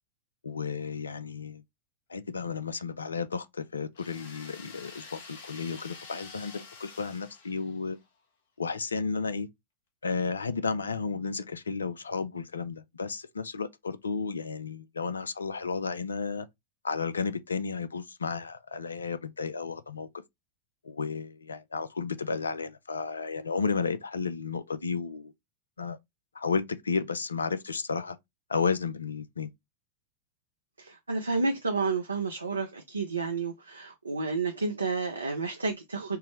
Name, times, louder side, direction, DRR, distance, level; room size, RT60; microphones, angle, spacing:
voice 1, 0.4-1.6 2.1-8.0 8.6-9.5 10.0-16.5 16.8-20.1 20.8-25.3 25.8-26.0 26.3-28.2 28.5-29.5, left 5 dB, 75° left, 0.4 m, -33 dB
sound 1, 3.9-8.1, left 4 dB, 60° left, 0.9 m, -48 dB
voice 2, 30.8-36.2, right 3 dB, 80° right, 0.5 m, -30 dB
4.5 x 2.0 x 3.0 m
figure-of-eight pair, 90°, 0 cm